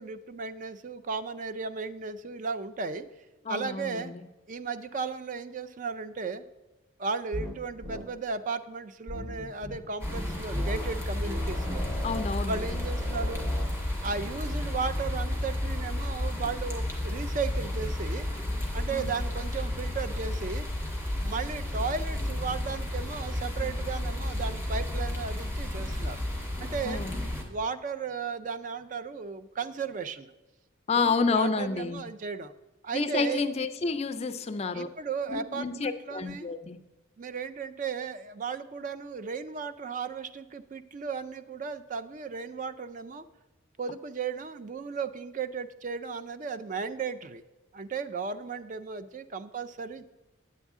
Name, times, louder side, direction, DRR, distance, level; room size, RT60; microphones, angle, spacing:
voice 1, 0.0-3.1 3.5-4.1 4.5-6.4 7.0-11.8 12.5-13.5 14.0-18.3 18.7-20.7 21.2-26.2 26.6-27.0 27.4-30.3 31.0-32.5 32.8-33.4 34.7-36.5 37.2-43.3 43.8-47.4 47.7-50.1, right 5 dB, 40° right, 12 dB, 0.4 m, -35 dB
voice 2, 3.5-4.2 12.0-12.7 18.9-19.1 26.8-27.2 30.9-32.0 32.9-34.9 35.3-36.8, left 4 dB, 30° left, 10 dB, 0.4 m, -29 dB
sound 1, 7.3-7.6 7.8-8.0 9.1-9.8 10.5-10.9 11.2-13.7, left 1 dB, 85° right, 2.2 m, -37 dB
sound 2, 10.0-27.4, left 1 dB, 15° right, 1.4 m, -32 dB
8.9 x 8.2 x 3.6 m, 1.1 s
head